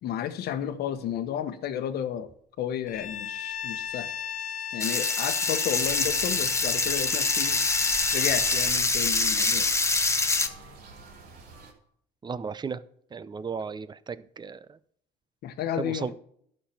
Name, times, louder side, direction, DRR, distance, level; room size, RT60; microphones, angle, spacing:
voice 1, 0.0-2.3 2.6-4.1 4.7-7.6 8.1-9.7 15.4-16.1, left 10 dB, 70° left, 10 dB, 1.1 m, -32 dB
Bowed string instrument, 2.9-8.8, left 9 dB, 50° left, 1.2 m, -36 dB
sound 1, 4.8-10.5, left 3 dB, 15° left, 1.0 m, -25 dB
sound 2, 5.8-11.7, right 3 dB, 65° right, 3.0 m, -46 dB
voice 2, 12.2-12.8 13.1-14.8 15.8-16.1, right 5 dB, 25° right, 16 dB, 0.6 m, -35 dB
11.5 x 6.7 x 5.7 m, 0.67 s
cardioid pair, 110°, 17 cm